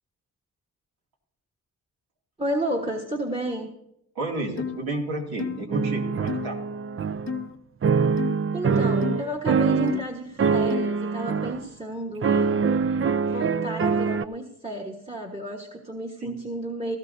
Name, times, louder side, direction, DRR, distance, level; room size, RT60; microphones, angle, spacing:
voice 1, 2.4-3.7 8.5-17.0, right 1 dB, 15° right, 3 dB, 1.4 m, -32 dB
voice 2, 4.2-6.6 16.2-16.3, right 2 dB, 85° right, -1 dB, 2.6 m, -31 dB
sound 1, 4.6-4.8 5.4-5.7 6.3-6.5 7.3-7.6 8.2-8.4 9.0-9.2 9.9-10.1 10.7-11.0, left 7 dB, 35° left, 0.7 m, -32 dB
sound 2, 5.7-7.5 7.8-10.1 10.4-11.6 12.2-14.2, right 5 dB, 35° right, 0.5 m, -24 dB
17.0 x 14.5 x 2.7 m, 0.83 s
cardioid pair, 55°, 37 cm